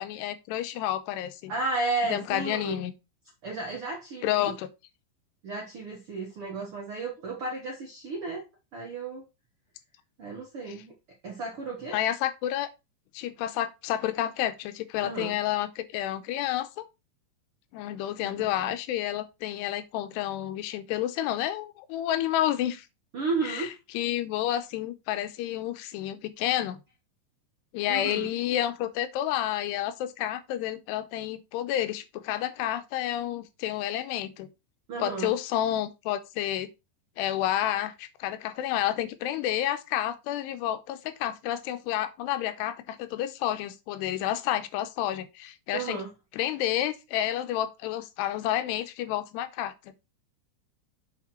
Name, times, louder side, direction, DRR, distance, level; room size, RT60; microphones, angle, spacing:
voice 1, 0.0-1.5 2.1-2.9 4.2-4.7 11.9-12.7 13.1-16.8 17.7-22.9 23.5-23.7 23.9-26.8 27.7-34.5 35.0-36.7 37.2-46.0 46.3-49.7, left 12 dB, 90° left, 2.9 m, -30 dB
voice 2, 1.5-2.8 3.4-4.5 5.4-8.4 8.7-9.2 10.2-10.9 11.2-12.0 15.0-15.3 18.2-18.7 23.1-23.7 27.9-28.3 34.9-35.3 45.7-46.1, right 3 dB, 65° right, 1.3 m, -33 dB
8.4 x 4.4 x 4.3 m
omnidirectional pair, 4.8 m